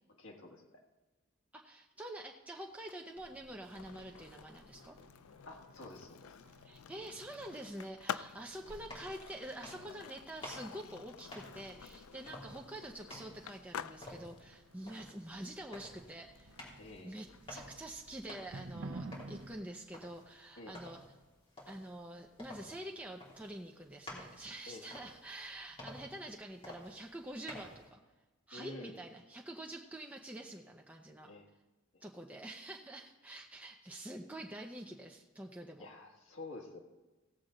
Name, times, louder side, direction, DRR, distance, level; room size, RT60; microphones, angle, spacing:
voice 1, 0.2-0.6 5.4-6.3 12.1-12.2 16.8-17.3 20.6-20.8 24.7-24.8 28.5-29.0 31.2-31.5 35.8-36.8, left 2 dB, 65° left, 0 dB, 1.7 m, -49 dB
voice 2, 1.5-5.0 6.6-16.6 17.0-21.0 21.7-28.0 28.5-31.3 32.0-35.9, right 1 dB, 5° right, 1 dB, 0.6 m, -47 dB
Skateboard, 2.7-18.6, left 8 dB, 85° left, 0.4 m, -50 dB
sound 1, 3.2-19.6, right 2 dB, 60° right, 0.6 m, -54 dB
sound 2, 8.7-27.8, left 1 dB, 25° left, 3.1 m, -53 dB
17.0 x 7.7 x 3.9 m, 1.2 s
head